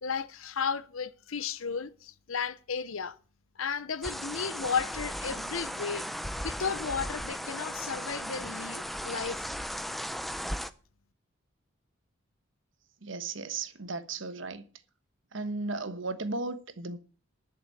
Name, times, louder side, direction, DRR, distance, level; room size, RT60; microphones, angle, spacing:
voice 1, 0.0-3.2 3.6-6.1 6.4-9.5, left 6 dB, 90° left, 0.8 m, -34 dB
sound 1, 4.0-10.7, equal, ahead, 0.5 m, -36 dB
voice 2, 13.0-14.6 15.3-17.0, right 3 dB, 65° right, 1.2 m, -35 dB
11.5 x 6.9 x 7.9 m
head